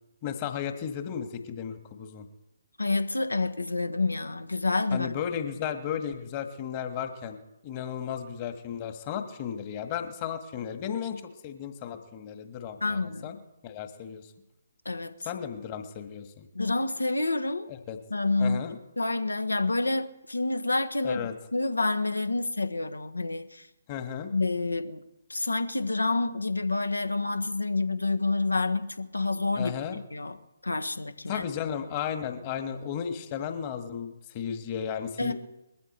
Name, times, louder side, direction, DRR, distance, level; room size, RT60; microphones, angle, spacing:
voice 1, 0.2-2.2 4.9-13.4 13.6-14.3 15.3-16.5 17.7-18.0 18.4-18.8 21.0-21.3 23.9-24.3 29.6-30.0 31.3-35.3, left 8 dB, 30° left, 1.7 m, -34 dB
voice 2, 2.8-5.1 12.8-13.4 14.8-15.1 16.5-17.7 18.1-18.6 19.0-23.7 24.3-25.0 25.3-30.4 30.6-31.5 35.2-35.3, left 3 dB, 80° left, 1.3 m, -28 dB
21.5 x 14.0 x 4.4 m
figure-of-eight pair, 140°, 0 cm